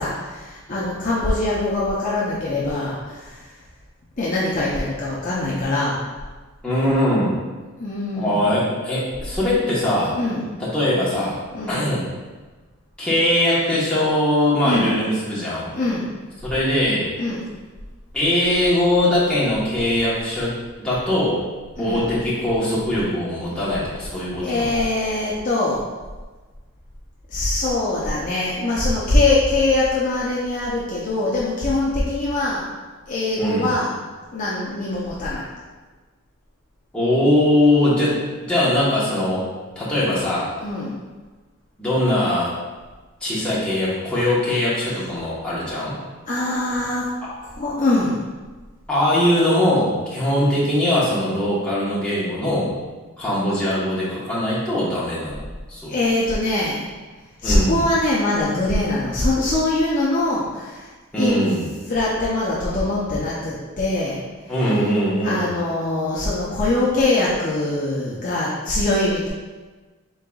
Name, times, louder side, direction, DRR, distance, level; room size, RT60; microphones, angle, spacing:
voice 1, 0.0-3.5 4.2-6.0 7.8-8.5 10.1-10.5 11.5-11.9 14.6-15.0 15.7-16.1 17.2-17.5 21.8-22.1 24.4-25.9 27.3-32.6 33.1-34.0 34.3-35.4 40.6-41.0 46.3-47.1 47.6-48.2 55.9-56.8 57.4-60.9 61.2-61.4 61.9-64.2 65.2-69.3, left 2 dB, 35° left, -6 dB, 0.6 m, -22 dB
voice 2, 6.6-7.4 8.1-10.1 10.6-11.4 11.7-12.0 13.0-15.7 16.4-17.1 18.1-20.5 20.8-21.4 21.8-24.7 33.4-33.7 36.9-38.2 38.5-39.5 39.8-40.5 41.8-42.5 43.2-45.9 48.9-52.7 53.2-55.9 57.4-57.8 61.1-61.7 64.5-65.5, left 1 dB, 5° left, -9 dB, 1.1 m, -21 dB
5.3 x 3.7 x 2.3 m, 1.3 s
head